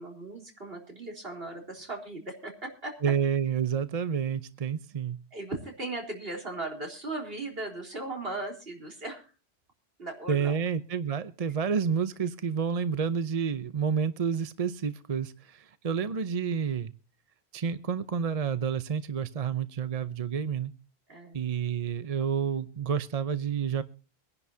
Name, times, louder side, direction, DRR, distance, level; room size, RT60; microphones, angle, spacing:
voice 1, 0.0-2.9 4.9-5.0 5.3-9.3 10.0-10.6 21.1-21.4, right 2 dB, 65° right, 1 dB, 4.2 m, -38 dB
voice 2, 3.0-5.2 10.3-16.9 17.5-20.7 21.3-23.8, right 7 dB, 40° right, 12 dB, 0.7 m, -29 dB
24.0 x 11.0 x 2.7 m, 0.34 s
omnidirectional pair, 1.1 m